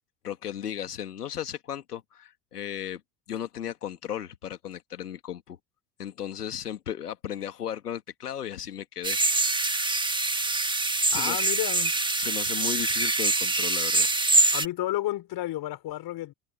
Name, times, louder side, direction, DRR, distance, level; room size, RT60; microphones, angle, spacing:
voice 1, 0.2-3.0 3.3-5.6 6.0-9.4 11.1-11.5 12.2-14.1, left 10 dB, 90° left, 2.3 m, -35 dB
sound 1, 9.0-14.7, right 2 dB, 10° right, 1.6 m, -24 dB
voice 2, 11.1-11.9 14.5-16.3, left 15 dB, 55° left, 5.4 m, -31 dB
hypercardioid pair, 70°, 45 cm